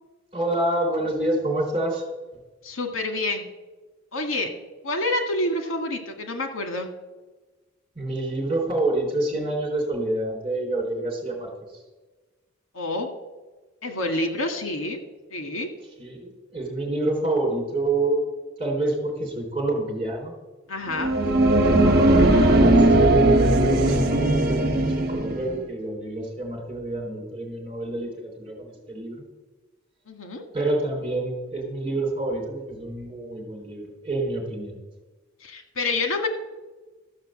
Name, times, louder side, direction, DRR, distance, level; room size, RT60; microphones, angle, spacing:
voice 1, 0.3-2.0 8.0-11.8 16.0-18.2 18.6-20.3 21.9-22.9 23.3-29.2 30.5-34.7, right 2 dB, 25° right, 0 dB, 3.6 m, -28 dB
voice 2, 2.6-3.5 4.1-4.5 4.8-6.9 12.7-13.1 13.8-15.0 15.3-15.7 20.7-21.1 30.1-30.4 35.4-36.3, left 2 dB, 90° left, 5 dB, 1.9 m, -27 dB
sound 1, 20.9-25.6, right 1 dB, 50° right, 1.5 m, -18 dB
13.5 x 6.6 x 7.6 m, 1.2 s
head